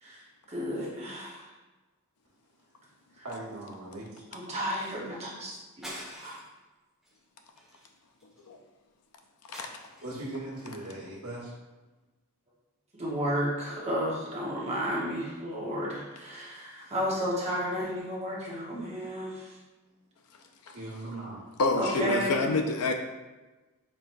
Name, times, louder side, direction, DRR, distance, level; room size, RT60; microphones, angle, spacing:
voice 1, 0.0-1.5 3.1-3.3 4.3-6.4 12.9-19.6 21.8-22.5, equal, 30° right, -6 dB, 1.1 m, -33 dB
voice 2, 3.2-4.1 4.5-4.6 10.0-11.5 20.7-21.5, right 1 dB, 85° right, -5 dB, 1.4 m, -39 dB
sound 1, 5.8-6.6 7.0-7.2 7.6-8.5 9.5-10.3, equal, ahead, 1.3 m, -45 dB
voice 3, 21.6-22.9, left 3 dB, 90° left, 4 dB, 0.5 m, -27 dB
4.5 x 3.9 x 2.6 m, 1.2 s
head